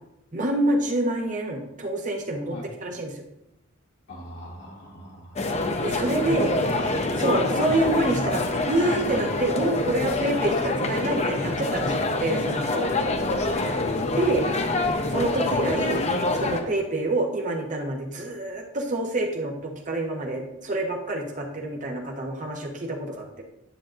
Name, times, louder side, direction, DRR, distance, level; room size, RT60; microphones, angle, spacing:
voice 1, 0.3-2.5 2.8-3.2 5.8-6.5 7.2-12.9 14.2-14.4 15.1-16.0 16.3-23.4, right 1 dB, 40° right, 2 dB, 0.9 m, -27 dB
voice 2, 4.1-5.4 6.3-7.3 14.3-14.5, equal, 55° left, -4 dB, 1.6 m, -40 dB
sound 1, 5.4-16.6, left 2 dB, 30° left, 0.6 m, -26 dB
10.0 x 7.4 x 2.5 m, 0.87 s
head